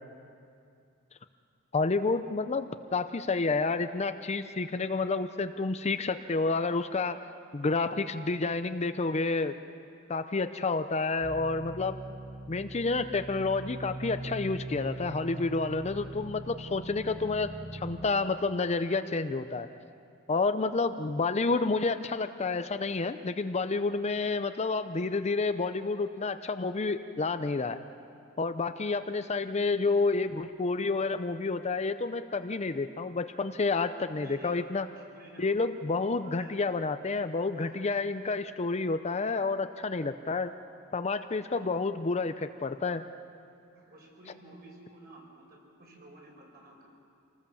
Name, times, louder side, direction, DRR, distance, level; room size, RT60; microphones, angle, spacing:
voice 1, 1.7-7.2 7.5-9.6 10.1-12.0 12.5-19.7 20.3-27.8 28.4-34.9 35.4-40.5 40.9-43.0, left 3 dB, 30° left, 9 dB, 0.6 m, -29 dB
sound 1, 11.2-18.0, right 2 dB, 15° right, 3.6 m, -41 dB
voice 2, 34.2-35.5 36.2-36.6 37.5-37.7 41.5-41.7 43.7-46.9, right 1 dB, 45° right, -2 dB, 5.8 m, -51 dB
27.0 x 19.5 x 7.1 m, 2.4 s
head